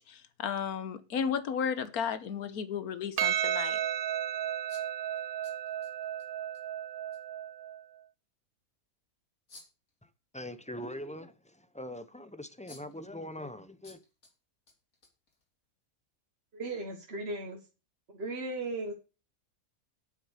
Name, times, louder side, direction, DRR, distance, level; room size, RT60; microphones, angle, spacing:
voice 1, 0.0-3.8, left 7 dB, 85° left, 1.5 m, -34 dB
Percussion, 3.2-7.8, right 10 dB, 75° right, 1.2 m, -33 dB
sound 1, 4.7-6.3 6.5-6.6 7.1-7.2 9.5-9.9 12.2-12.3 12.7-13.1 13.8-14.3 14.7-15.6, left 2 dB, 70° left, 3.5 m, -56 dB
voice 2, 10.0-14.0, left 1 dB, 10° left, 0.4 m, -42 dB
voice 3, 16.5-17.6 18.1-18.9, right 2 dB, 45° right, 1.6 m, -36 dB
9.2 x 7.4 x 6.4 m
omnidirectional pair, 1.5 m